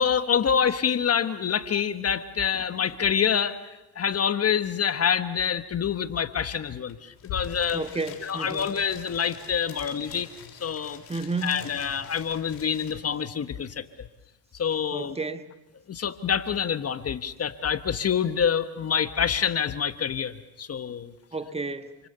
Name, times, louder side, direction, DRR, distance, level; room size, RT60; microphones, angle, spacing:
voice 1, 0.0-3.6 3.9-7.8 8.2-10.3 10.6-11.0 11.4-14.1 14.6-15.2 15.9-21.1, left 7 dB, 35° left, 1.4 m, -26 dB
sound 1, 6.9-7.0 7.2-12.9, left 10 dB, 70° left, 6.9 m, -43 dB
voice 2, 7.7-8.7 11.1-11.6 14.9-15.5 21.3-21.9, right 3 dB, 15° right, 1.5 m, -31 dB
28.5 x 27.5 x 6.9 m
supercardioid pair, 90°, 43 cm